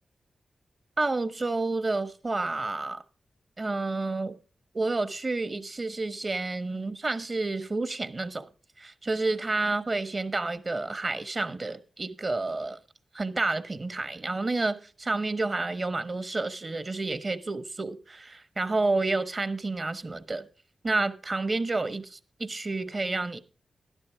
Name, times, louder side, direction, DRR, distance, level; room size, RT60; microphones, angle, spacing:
voice 1, 1.0-3.0 3.6-4.4 4.7-8.4 8.8-12.8 13.1-20.5 20.8-23.4, right 3 dB, 45° right, 1.2 m, -30 dB
12.5 x 11.5 x 3.6 m
cardioid pair, 45°, 0 cm